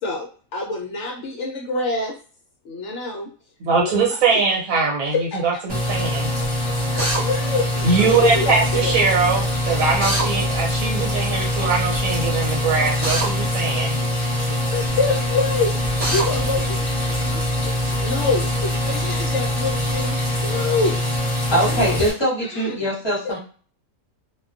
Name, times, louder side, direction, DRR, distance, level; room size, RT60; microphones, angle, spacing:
voice 1, 0.0-2.2 2.6-3.3 3.7-4.2 5.1-5.4 6.9-9.0 9.7-9.9 14.0-14.1 14.5-21.0 21.6-22.1 22.4-22.8 23.2-23.3, left 3 dB, 65° left, 0 dB, 0.8 m, -26 dB
voice 2, 3.6-5.2 5.4-6.3 7.8-14.0, right 4 dB, 70° right, -1 dB, 1.2 m, -21 dB
sound 1, 5.7-22.1, left 1 dB, 5° right, 0.9 m, -23 dB
Drill, 7.0-7.2 10.0-10.3 13.0-13.3 16.0-16.3, right 2 dB, 45° right, 0.4 m, -23 dB
voice 3, 21.5-23.4, right 1 dB, 25° left, -5 dB, 0.8 m, -22 dB
2.3 x 2.2 x 2.4 m, 0.40 s
omnidirectional pair, 1.5 m